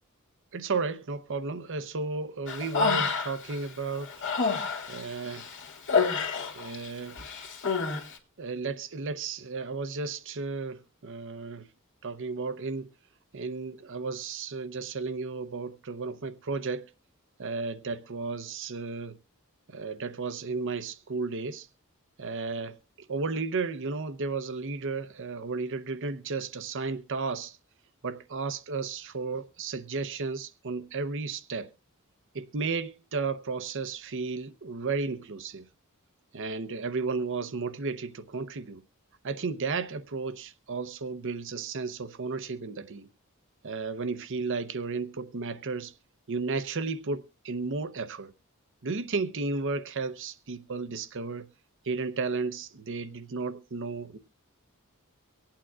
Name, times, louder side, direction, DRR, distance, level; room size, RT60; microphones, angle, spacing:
voice 1, 0.5-4.1 4.9-5.4 6.4-7.2 8.4-11.7 12.0-12.9 13.3-16.8 17.4-19.2 19.7-21.7 22.2-22.8 23.1-27.6 28.0-31.7 32.3-35.7 36.3-38.8 39.2-43.1 43.6-45.9 46.3-48.3 48.8-51.5 51.8-54.2, right 4 dB, 60° right, 0.8 m, -33 dB
Human voice, 2.5-3.5 3.9-6.9 7.2-8.0, left 5 dB, 60° left, 2.0 m, -28 dB
24.5 x 8.8 x 2.4 m
head